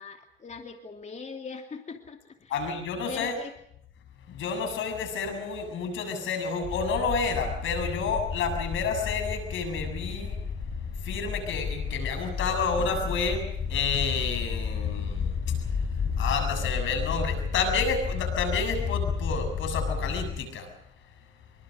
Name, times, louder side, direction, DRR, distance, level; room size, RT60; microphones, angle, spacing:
voice 1, 0.0-2.7 3.1-3.6, left 5 dB, 35° left, 3 dB, 2.8 m, -41 dB
voice 2, 2.5-3.3 4.3-10.4 11.0-15.4 16.2-20.7, left 5 dB, 80° left, 7 dB, 7.2 m, -30 dB
sound 1, 6.6-20.4, left 6 dB, 55° left, 6.2 m, -32 dB
26.0 x 23.5 x 6.5 m, 0.72 s
cardioid pair, 90°, 20 cm